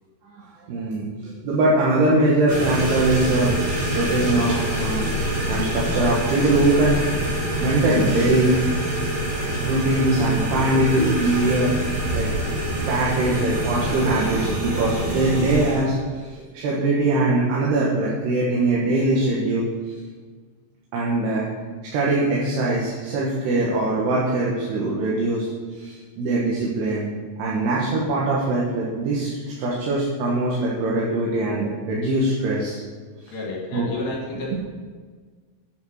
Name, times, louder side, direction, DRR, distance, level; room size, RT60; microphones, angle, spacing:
voice 1, 0.3-3.5 3.9-5.1 5.5-7.1 7.6-8.9 9.6-12.3 12.9-19.7 20.9-21.5 21.9-25.5 25.8-27.1 27.4-32.8 33.7-33.9, right 2 dB, 85° right, -5 dB, 3.4 m, -22 dB
sound 1, 2.5-15.8, right 1 dB, 55° right, 5.3 m, -25 dB
voice 2, 33.3-34.6, left 2 dB, 70° left, -4 dB, 3.5 m, -31 dB
9.1 x 7.1 x 6.5 m, 1.5 s
omnidirectional pair, 4.6 m